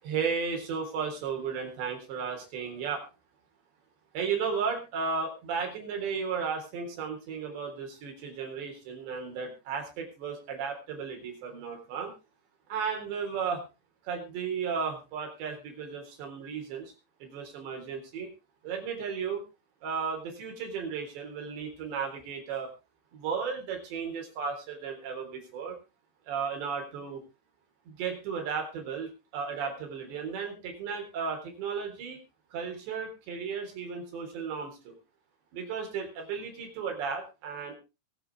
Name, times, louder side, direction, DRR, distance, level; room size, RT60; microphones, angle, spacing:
voice 1, 0.0-3.0 4.1-12.1 12.7-13.6 14.0-16.9 17.2-18.3 18.6-19.4 19.8-22.7 23.1-25.8 26.3-27.2 27.9-32.2 32.5-35.0 35.5-37.8, right 6 dB, 70° right, 3 dB, 6.1 m, -34 dB
23.0 x 8.4 x 3.6 m, 0.29 s
omnidirectional pair, 5.2 m